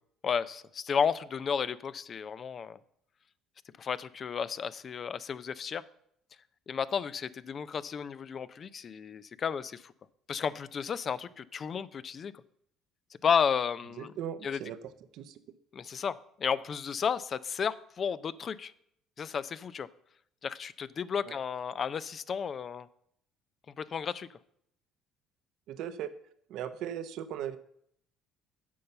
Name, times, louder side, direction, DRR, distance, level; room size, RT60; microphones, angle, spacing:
voice 1, 0.2-2.8 3.8-5.8 6.7-9.9 10.3-12.3 13.2-14.1 14.4-14.6 15.7-18.7 19.2-19.9 20.4-22.9 23.8-24.3, left 7 dB, 45° left, 16 dB, 0.4 m, -32 dB
voice 2, 14.0-14.8 15.1-15.4 21.3-21.4 25.7-26.1 26.5-27.6, right 10 dB, 70° right, 11 dB, 0.7 m, -38 dB
8.4 x 5.4 x 6.8 m, 0.71 s
supercardioid pair, 85°, 0 cm